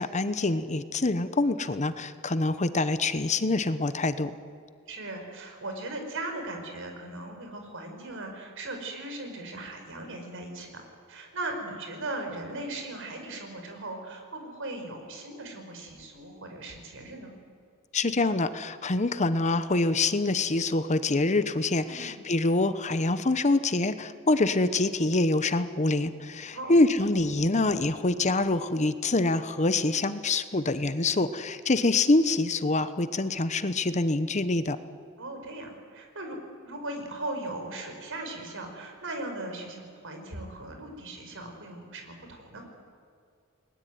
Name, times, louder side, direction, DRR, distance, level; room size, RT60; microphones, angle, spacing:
voice 1, 0.0-4.3 17.9-34.8, left 2 dB, 35° left, 12 dB, 0.9 m, -25 dB
voice 2, 4.9-17.3 21.8-22.2 26.5-26.7 35.2-36.4 36.7-42.6, right 2 dB, 60° right, 4 dB, 5.3 m, -38 dB
30.0 x 21.0 x 9.5 m, 2.3 s
head